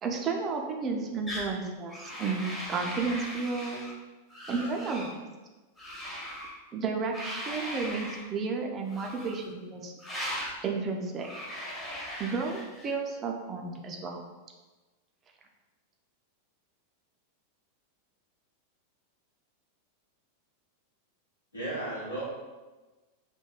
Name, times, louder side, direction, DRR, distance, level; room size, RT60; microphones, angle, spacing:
voice 1, 0.0-3.8 4.5-5.2 6.7-9.9 10.6-11.3 12.2-14.2, right 4 dB, 30° right, 2 dB, 0.3 m, -32 dB
sound 1, 1.3-1.5 1.9-3.9 4.3-5.1 5.8-6.5 7.1-8.2 8.9-9.5 10.0-10.6 11.2-12.9, equal, 15° left, 0.7 m, -39 dB
voice 2, 4.5-5.0 13.1-13.2 21.5-22.2, right 1 dB, 80° left, -6 dB, 0.9 m, -37 dB
2.9 x 2.2 x 2.2 m, 1.2 s
figure-of-eight pair, 90°, 0 cm